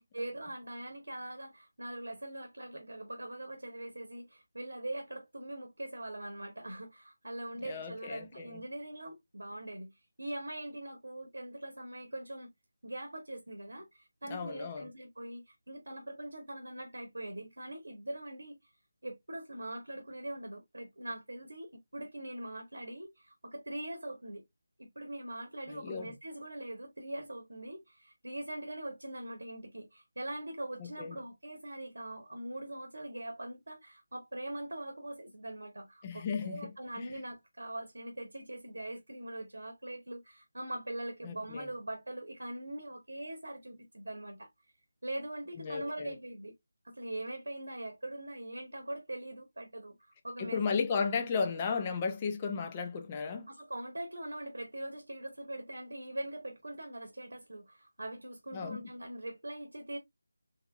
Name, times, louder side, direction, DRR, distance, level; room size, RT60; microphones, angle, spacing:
voice 1, 0.0-12.5 12.8-18.6 19.0-24.4 24.8-44.5 45.0-46.6 46.8-50.8 53.5-60.0, right 1 dB, 75° right, 1.0 m, -42 dB
voice 2, 7.6-8.6 14.3-14.9 25.7-26.1 30.8-31.2 36.0-37.1 41.2-41.7 45.6-46.1 50.4-53.5 58.5-58.8, left 5 dB, 20° left, 0.6 m, -35 dB
3.8 x 2.7 x 2.3 m
figure-of-eight pair, 160°, 0 cm